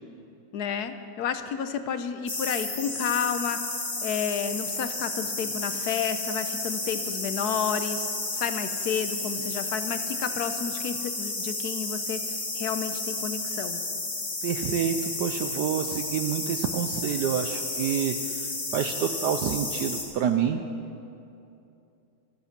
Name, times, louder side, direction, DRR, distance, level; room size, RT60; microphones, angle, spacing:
voice 1, 0.5-3.7 4.0-13.8, left 7 dB, 65° left, 10 dB, 1.1 m, -31 dB
sound 1, 2.3-20.0, left 2 dB, 40° left, 2.5 m, -32 dB
voice 2, 14.4-20.6, right 8 dB, 70° right, 7 dB, 1.1 m, -28 dB
24.5 x 8.2 x 5.9 m, 2.7 s
omnidirectional pair, 2.2 m